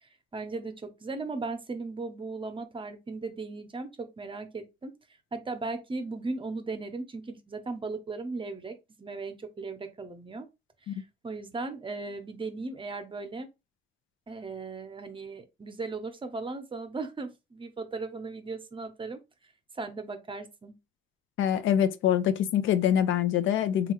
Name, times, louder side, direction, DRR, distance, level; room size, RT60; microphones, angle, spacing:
voice 1, 0.0-4.9 5.3-10.5 10.9-13.5 14.3-19.2 19.8-20.7, right 3 dB, 25° right, 0.7 m, -37 dB
voice 2, 21.4-23.9, left 10 dB, 75° left, 0.4 m, -25 dB
3.3 x 2.4 x 3.0 m
cardioid pair, 90°, 20 cm